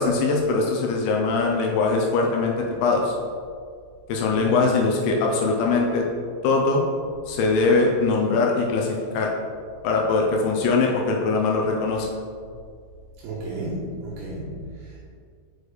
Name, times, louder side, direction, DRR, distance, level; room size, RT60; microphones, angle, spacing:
voice 1, 0.0-3.2 4.1-6.1 6.4-6.8 7.3-9.3 9.8-12.1, left 3 dB, 80° left, 0 dB, 2.9 m, -22 dB
voice 2, 13.2-15.1, right 2 dB, 75° right, -6 dB, 2.7 m, -33 dB
6.4 x 6.4 x 3.5 m, 2.1 s
omnidirectional pair, 5.6 m